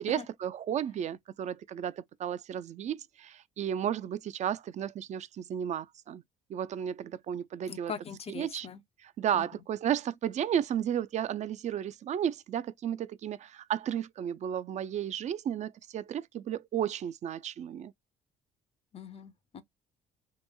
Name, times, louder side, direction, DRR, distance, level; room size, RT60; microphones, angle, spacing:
voice 1, 0.0-6.2 6.5-7.9 8.3-8.7 9.0-17.9, right 9 dB, 45° right, 0.4 m, -33 dB
voice 2, 7.7-8.8 9.3-9.4 18.9-19.6, left 6 dB, 35° left, 0.5 m, -41 dB
3.0 x 2.5 x 2.2 m
hypercardioid pair, 50°, 17 cm